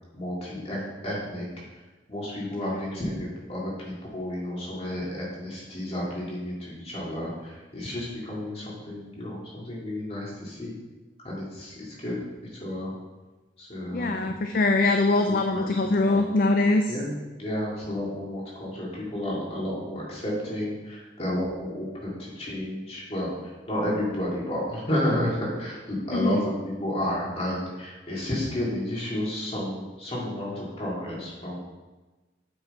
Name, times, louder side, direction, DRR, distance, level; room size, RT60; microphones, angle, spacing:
voice 1, 0.1-1.4 2.1-10.7 11.2-12.2 12.6-12.9 13.6-14.3 15.5-16.2 16.9-17.1 17.4-23.3 23.7-31.6, left 1 dB, 35° left, -5 dB, 2.4 m, -31 dB
voice 2, 13.9-16.9 26.1-26.4, left 2 dB, 50° left, 5 dB, 0.4 m, -23 dB
7.6 x 6.0 x 4.4 m, 1.2 s
head